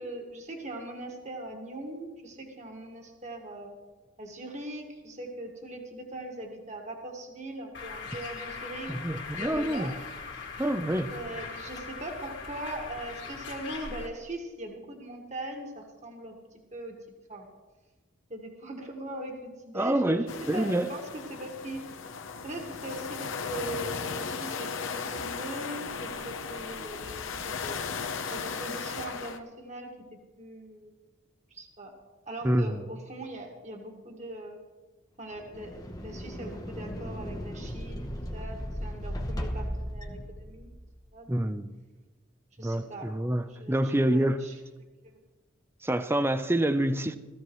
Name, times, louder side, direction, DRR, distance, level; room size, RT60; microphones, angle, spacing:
voice 1, 0.0-3.8 4.2-8.9 9.3-9.9 11.1-16.4 16.7-17.0 17.3-17.5 18.3-21.8 22.4-24.7 25.1-27.8 28.3-30.9 31.5-31.9 32.3-34.6 35.2-40.7 41.1-41.3 42.6-43.1 43.4-44.6 45.0-45.1, right 1 dB, 35° right, 2 dB, 1.8 m, -40 dB
Bird, 7.7-14.1, left 5 dB, 60° left, 2.2 m, -40 dB
voice 2, 8.9-9.9 10.6-11.1 19.7-20.9 32.4-32.8 41.3-41.8 42.6-44.5 45.8-47.2, right 1 dB, 10° right, 11 dB, 0.5 m, -27 dB
sound 1, 20.3-29.4, left 5 dB, 75° left, 0.8 m, -36 dB
sound 2, 35.3-40.9, equal, 20° left, 0.9 m, -36 dB
16.5 x 15.0 x 3.1 m, 1.2 s
head